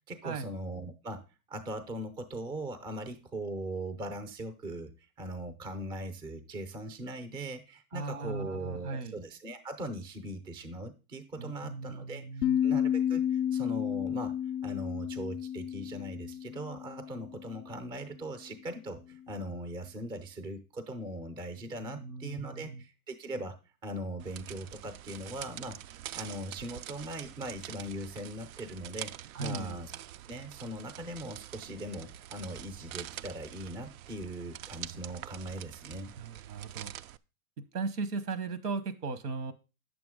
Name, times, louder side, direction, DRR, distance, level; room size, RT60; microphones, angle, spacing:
voice 1, 0.1-1.2 1.5-14.4 14.6-25.8 26.1-29.1 29.4-29.9 30.3-36.1, right 1 dB, 10° right, 10 dB, 0.5 m, -40 dB
voice 2, 7.9-9.2 11.4-12.6 21.8-22.8 29.3-29.8 36.2-36.9 37.6-39.5, right 4 dB, 85° right, 14 dB, 1.2 m, -37 dB
sound 1, 12.4-17.6, left 10 dB, 40° left, 0.5 m, -31 dB
sound 2, 24.2-37.2, right 12 dB, 65° right, 0.5 m, -45 dB
8.9 x 6.9 x 3.7 m, 0.31 s
hypercardioid pair, 135°, 45 cm